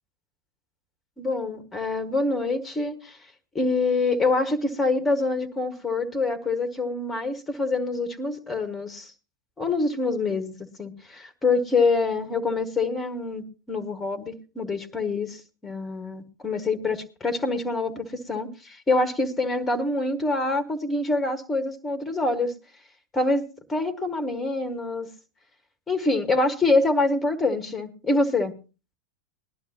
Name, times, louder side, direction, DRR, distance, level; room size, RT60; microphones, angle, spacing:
voice 1, 1.2-3.2 3.5-9.1 9.6-22.5 23.1-23.4 23.7-25.1 25.9-28.5, left 3 dB, 15° left, 9 dB, 1.5 m, -25 dB
20.0 x 11.5 x 2.9 m, 0.32 s
figure-of-eight pair, 90°, 0 cm